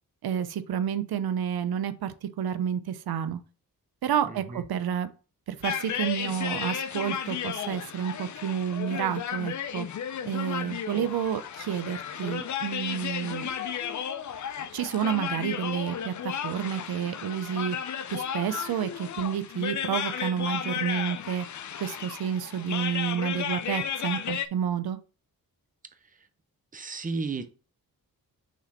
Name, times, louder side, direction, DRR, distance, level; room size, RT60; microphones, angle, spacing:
voice 1, 0.2-3.4 4.0-5.1 5.5-9.9 10.3-13.5 14.7-17.8 18.1-21.5 21.8-25.0, right 9 dB, 90° right, 0.7 m, -30 dB
voice 2, 4.3-4.6 26.7-27.5, right 4 dB, 20° right, 0.7 m, -33 dB
sound 1, 5.6-24.5, left 8 dB, 55° left, 0.6 m, -34 dB
6.1 x 4.2 x 4.3 m
wide cardioid pair, 145°, 36 cm